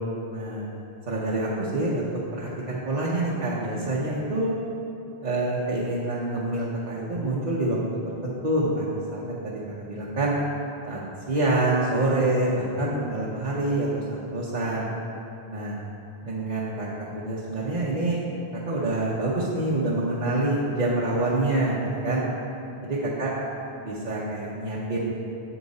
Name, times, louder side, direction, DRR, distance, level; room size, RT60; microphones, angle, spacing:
voice 1, 0.3-0.7 1.1-4.5 5.2-7.8 8.2-10.3 10.9-11.0 11.3-14.9 15.5-15.7 16.2-18.2 18.7-22.2 22.8-23.3 23.8-25.2, right 2 dB, 45° right, -8 dB, 0.9 m, -26 dB
7.7 x 5.0 x 4.0 m, 2.8 s
omnidirectional pair, 1.0 m